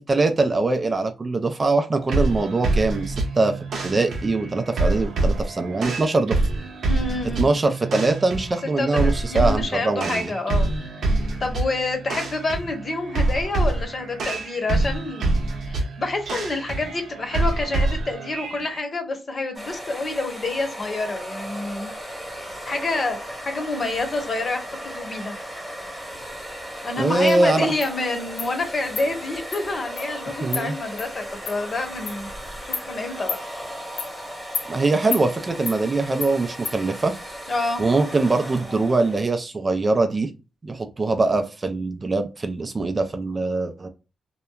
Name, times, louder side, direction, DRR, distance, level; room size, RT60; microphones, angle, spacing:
voice 1, 0.0-3.5 3.8-6.4 7.4-10.3 27.0-27.7 30.4-30.7 34.7-37.1 37.8-40.3 40.6-43.9, right 3 dB, 30° right, 0.4 m, -22 dB
sound 1, 2.1-18.8, right 2 dB, 75° right, 0.8 m, -26 dB
voice 2, 6.8-7.5 8.6-10.7 11.4-15.3 15.7-21.9 22.3-25.3 26.8-32.3 32.6-33.4 37.5-37.8, left 2 dB, 40° left, 0.9 m, -28 dB
sound 2, 19.5-39.2, equal, 5° right, 1.1 m, -36 dB
Insect, 27.3-27.4 27.8-27.9 28.4-28.5 29.0-29.1 29.5-29.6 30.0-30.1 30.5-30.6 31.0-31.1 31.5-31.6 32.1-32.2 32.7-32.9 33.3-33.4 34.0-34.1 34.5-34.7 35.1-35.2 35.7-35.8 36.2-36.3 36.6-36.8, left 6 dB, 80° left, 0.6 m, -30 dB
2.8 x 2.1 x 2.2 m
cardioid pair, 90°, 0 cm